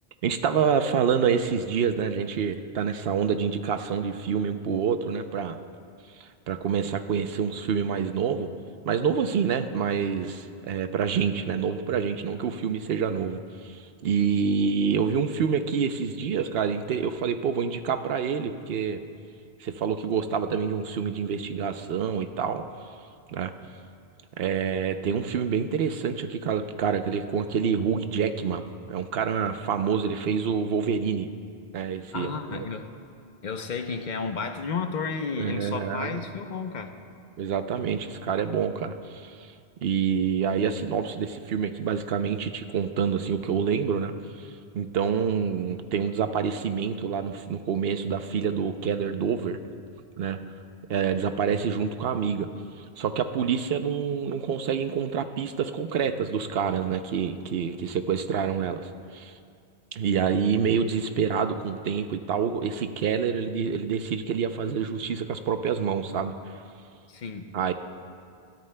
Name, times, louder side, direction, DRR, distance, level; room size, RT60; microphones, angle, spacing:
voice 1, 0.2-5.6 6.2-8.5 8.8-19.0 19.6-22.6 23.3-23.5 24.4-28.6 28.9-31.3 31.7-32.6 35.4-36.2 37.4-39.5 39.8-44.1 44.4-44.5 44.7-49.6 50.2-50.4 50.9-52.5 53.0-58.8 59.1-59.3 59.9-66.3 67.5-67.7, right 7 dB, 70° right, 9 dB, 0.9 m, -27 dB
voice 2, 32.1-32.9 33.4-36.9 67.1-67.5, left 5 dB, 50° left, 6 dB, 0.8 m, -32 dB
21.5 x 13.0 x 2.2 m, 2.3 s
omnidirectional pair, 1.1 m